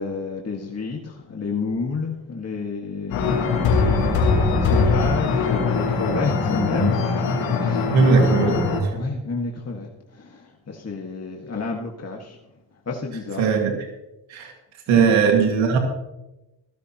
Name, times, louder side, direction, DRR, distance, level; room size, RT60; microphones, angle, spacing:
voice 1, 0.0-8.1 8.9-12.4 12.9-13.5 15.0-15.1, left 4 dB, 35° left, 0 dB, 1.9 m, -30 dB
sound 1, 3.1-8.8, left 4 dB, 90° left, 4.0 m, -21 dB
voice 2, 7.9-8.6 13.4-13.7 14.3-14.5 14.9-15.8, right 5 dB, 85° right, 3 dB, 2.2 m, -18 dB
15.0 x 15.0 x 3.0 m, 0.96 s
supercardioid pair, 60°, 45 cm